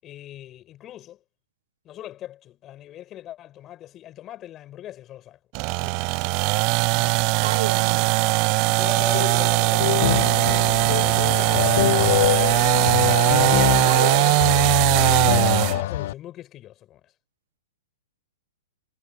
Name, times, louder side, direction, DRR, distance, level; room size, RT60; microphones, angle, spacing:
voice 1, 0.0-1.2 1.8-5.4 5.7-7.6 8.2-8.3 8.8-10.2 11.0-13.0 15.0-17.1, left 13 dB, 25° left, 6.9 m, -41 dB
sound 1, 5.5-15.8, right 31 dB, 40° right, 0.4 m, -20 dB
voice 2, 7.4-8.2 13.8-14.8, right 11 dB, 60° right, 1.4 m, -32 dB
sound 2, 9.1-16.1, left 15 dB, 50° left, 0.6 m, -24 dB
figure-of-eight pair, 115°, 0 cm